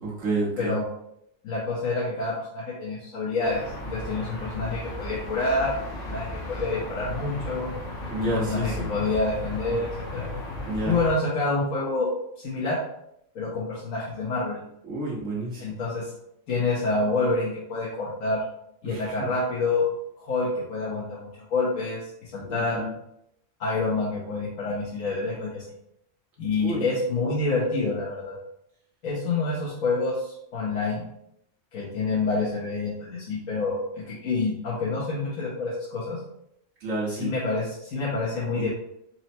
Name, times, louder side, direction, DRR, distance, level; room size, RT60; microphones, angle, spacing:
voice 1, 0.0-0.7 8.1-8.9 10.6-11.0 14.8-15.7 18.8-19.3 22.5-22.9 26.6-26.8 36.8-37.3 38.5-38.7, right 2 dB, 70° right, -5 dB, 1.5 m, -30 dB
voice 2, 1.4-5.8 6.0-7.7 8.2-9.9 10.1-10.3 10.8-12.1 12.4-12.8 13.3-14.6 15.6-16.1 16.5-18.4 18.8-19.8 20.2-22.8 23.6-25.6 26.4-28.4 29.0-31.1 31.7-36.2 37.1-38.7, left 3 dB, 85° left, -7 dB, 1.3 m, -27 dB
sound 1, 3.4-11.1, left 1 dB, 65° left, 1.1 m, -35 dB
4.4 x 2.1 x 4.2 m, 0.76 s
omnidirectional pair, 1.4 m